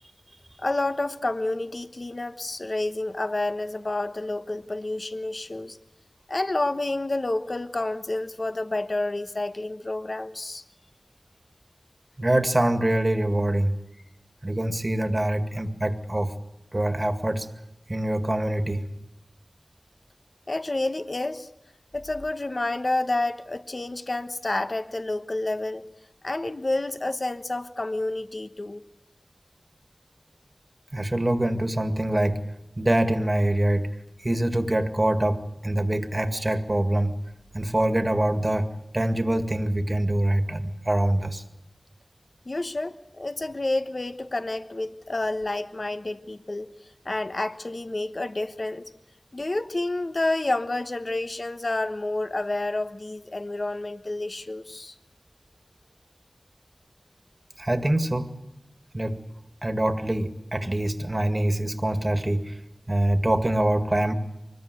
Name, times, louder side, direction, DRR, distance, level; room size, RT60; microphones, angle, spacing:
voice 1, 0.6-5.8 6.3-10.6 20.5-21.5 21.9-25.9 26.2-28.8 42.4-46.7 47.0-48.9 49.3-54.9, left 2 dB, 55° left, 10 dB, 1.2 m, -29 dB
voice 2, 12.2-13.8 14.4-16.3 16.7-17.5 17.9-18.9 30.9-32.4 32.8-33.9 34.2-37.2 37.5-38.7 38.9-41.4 57.6-58.3 58.9-59.2 59.6-62.6 62.9-64.1, right 1 dB, 35° right, 8 dB, 2.1 m, -24 dB
24.5 x 21.0 x 8.3 m, 0.87 s
wide cardioid pair, 45°, 0 cm